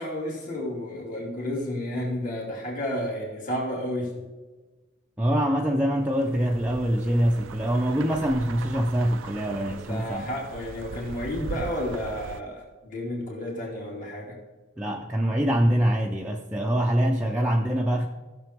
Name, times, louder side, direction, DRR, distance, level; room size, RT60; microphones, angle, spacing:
voice 1, 0.0-4.2 9.7-14.4, left 1 dB, 40° left, -3 dB, 2.5 m, -31 dB
voice 2, 5.2-10.3 11.4-11.5 14.8-18.1, equal, 5° right, -2 dB, 0.6 m, -24 dB
sound 1, 6.1-12.4, right 5 dB, 80° right, 0.4 m, -40 dB
16.0 x 6.8 x 3.5 m, 1.2 s
head